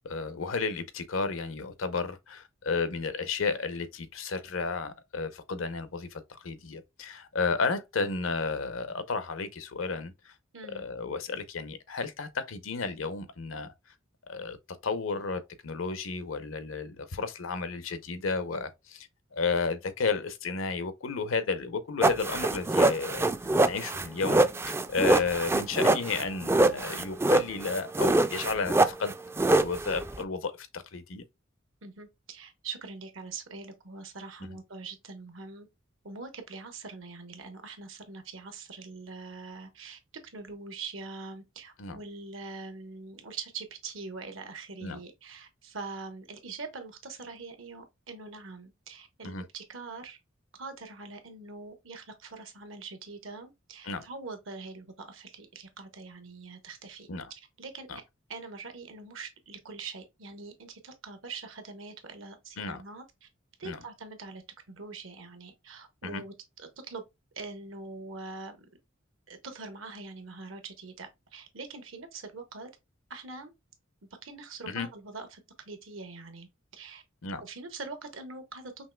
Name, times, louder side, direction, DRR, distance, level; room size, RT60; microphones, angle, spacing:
voice 1, 0.0-10.3 10.7-13.7 14.3-14.6 14.8-23.2 23.6-24.5 24.9-29.1 29.6-31.2 41.8-42.0 44.8-45.0 49.2-49.4 53.8-54.1 57.1-57.3 57.9-58.0 62.6-62.8 63.6-63.8 66.0-66.2 74.7-74.9 77.2-77.4, left 4 dB, 85° left, 0.7 m, -32 dB
voice 2, 10.5-10.8 25.0-25.2 31.8-35.7 36.0-40.0 40.3-50.2 50.6-57.9 58.3-63.3 63.6-64.4 64.7-67.0 67.4-68.6 69.3-72.7 73.1-73.5 74.2-75.4 75.7-76.5 76.7-77.0 77.4-78.9, right 4 dB, 70° right, 1.1 m, -43 dB
sound 1, 22.0-30.2, right 2 dB, 15° right, 0.3 m, -24 dB
5.4 x 3.1 x 2.2 m
head